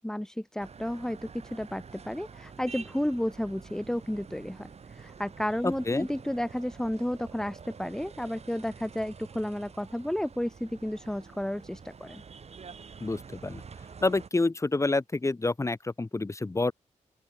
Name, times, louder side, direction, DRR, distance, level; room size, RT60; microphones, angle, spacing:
voice 1, 0.0-12.2, left 1 dB, 5° left, 0.8 m, -32 dB
sound 1, 0.6-14.3, right 6 dB, 55° right, 6.3 m, -48 dB
voice 2, 5.6-6.1 13.0-13.6 14.0-16.7, left 2 dB, 20° left, 2.7 m, -28 dB
open air
wide cardioid pair, 130°, 13 cm